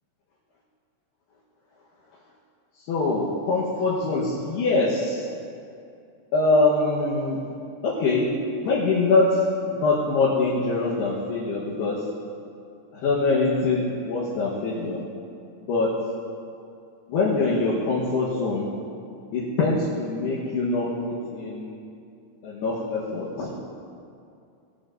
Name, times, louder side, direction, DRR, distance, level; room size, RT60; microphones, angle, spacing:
voice 1, 2.9-5.3 6.3-7.4 7.8-8.3 8.6-9.4 9.7-12.0 12.9-15.0 15.7-15.9 17.1-18.7 19.3-21.8 22.4-23.5, left 3 dB, 70° left, -7 dB, 2.8 m, -23 dB
17.0 x 13.5 x 2.6 m, 2.5 s
omnidirectional pair, 5.9 m